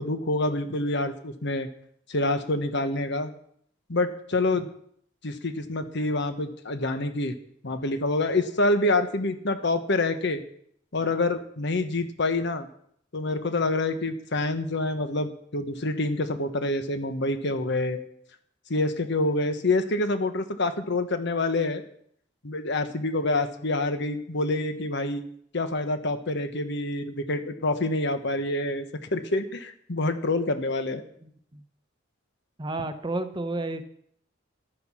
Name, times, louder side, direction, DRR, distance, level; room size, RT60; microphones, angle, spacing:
voice 1, 0.0-1.7 2.1-3.3 3.9-4.7 5.2-7.3 7.6-10.4 10.9-12.7 13.1-18.0 18.7-21.8 22.4-25.2 25.5-28.9 29.1-31.0, left 2 dB, 65° left, 9 dB, 1.2 m, -27 dB
voice 2, 31.2-31.6 32.6-33.8, right 2 dB, 25° right, 9 dB, 0.9 m, -31 dB
12.0 x 9.3 x 6.2 m, 0.66 s
head